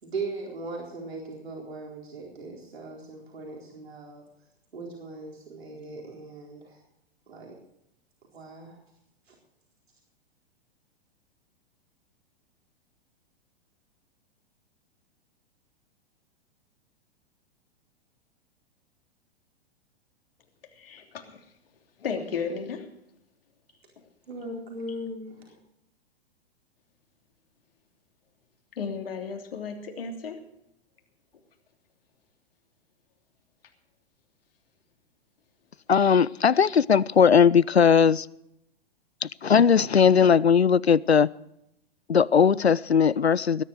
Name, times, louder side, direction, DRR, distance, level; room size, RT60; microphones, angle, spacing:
voice 1, 0.0-4.2 4.7-6.8 7.3-7.6 8.3-8.8 9.3-9.4 24.3-25.6, right 2 dB, 75° right, 4.2 m, -38 dB
voice 2, 20.7-21.4 22.0-22.9 28.8-30.4, left 5 dB, 65° left, 3.1 m, -34 dB
voice 3, 35.9-38.3 39.2-41.3 42.1-43.6, left 7 dB, 85° left, 0.5 m, -19 dB
20.0 x 11.0 x 4.7 m
figure-of-eight pair, 105°, 31 cm